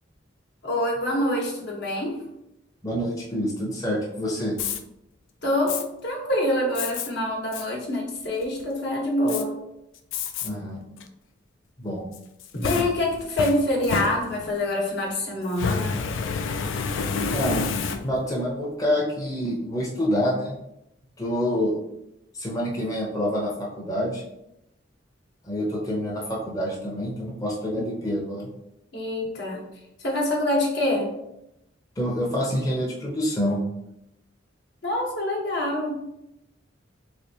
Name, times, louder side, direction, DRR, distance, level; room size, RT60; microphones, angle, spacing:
voice 1, 0.6-2.2 5.4-9.5 12.5-16.0 28.9-29.6 30.0-31.1 34.8-35.9, left 1 dB, 65° left, -1 dB, 0.9 m, -25 dB
voice 2, 2.8-4.6 10.4-10.8 11.8-12.0 17.3-17.7 18.0-20.5 21.2-21.7 22.4-24.2 25.4-28.5 32.0-33.6, equal, 20° left, -3 dB, 0.6 m, -27 dB
Fire, 4.5-4.8 5.7-5.8 6.7-7.1 7.5-7.6 8.2-8.6 9.3-9.4 10.1-10.5 11.0-11.1 12.1-14.6 15.5-18.3, left 5 dB, 90° left, 0.3 m, -29 dB
3.3 x 3.3 x 2.7 m, 0.84 s
head